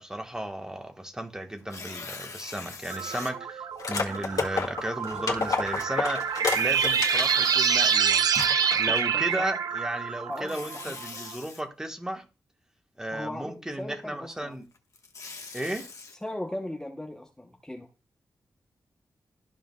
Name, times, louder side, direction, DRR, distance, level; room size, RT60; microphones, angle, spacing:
voice 1, 0.0-12.2 13.0-14.7 15.5-15.9, right 1 dB, 10° right, 1.3 m, -34 dB
Tearing, 1.6-3.3 4.0-4.1 6.3-8.4 10.3-11.6 14.7-16.1, left 4 dB, 55° left, 1.3 m, -43 dB
sound 1, 2.9-11.1, right 7 dB, 75° right, 0.6 m, -27 dB
sound 2, 3.8-7.4 7.8-7.9 8.3-9.1, left 4 dB, 70° left, 1.9 m, -30 dB
voice 2, 8.9-9.5 10.3-11.0 13.1-14.5 16.2-17.9, left 1 dB, 10° left, 0.9 m, -38 dB
13.5 x 5.0 x 2.3 m
wide cardioid pair, 110°, 7 cm